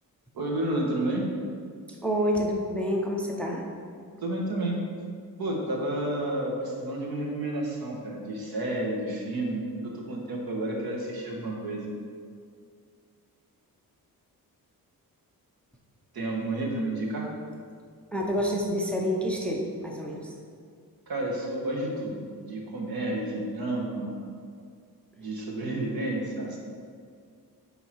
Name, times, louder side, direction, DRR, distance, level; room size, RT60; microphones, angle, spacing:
voice 1, 0.3-1.3 4.2-4.8 5.4-11.9 16.1-17.3 21.1-24.3 25.2-26.6, right 1 dB, 75° right, -2 dB, 1.5 m, -31 dB
voice 2, 2.0-3.6 18.1-20.3, equal, 5° left, 0 dB, 0.6 m, -28 dB
10.0 x 3.9 x 4.5 m, 2.2 s
wide cardioid pair, 180°, 37 cm